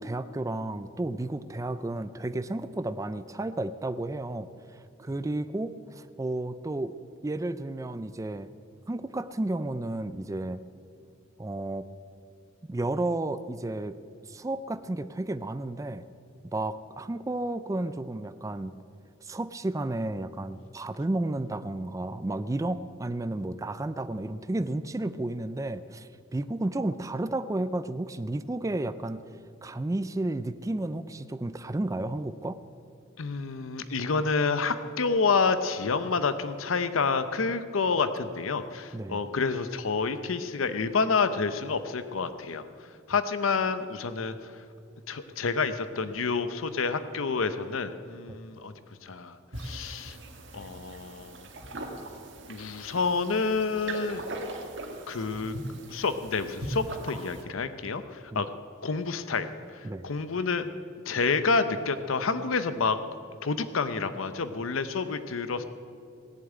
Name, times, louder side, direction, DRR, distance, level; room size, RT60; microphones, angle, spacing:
voice 1, 0.0-7.0 7.2-8.5 8.9-10.6 11.4-11.9 12.7-14.0 14.2-16.1 16.5-18.7 19.2-29.2 29.6-32.6 38.9-39.2 58.3-58.4 59.8-60.1, right 2 dB, 15° right, 12 dB, 0.4 m, -32 dB
voice 2, 33.2-42.6 43.1-44.5 45.1-48.7 49.0-50.2 50.5-51.5 52.5-54.2 55.1-55.6 55.9-58.5 58.8-60.7 61.1-63.0 63.4-65.6, left 4 dB, 85° left, 11 dB, 0.7 m, -28 dB
sound 1, 49.5-57.4, right 1 dB, 65° right, 1.9 m, -40 dB
17.5 x 7.4 x 9.0 m, 2.5 s
head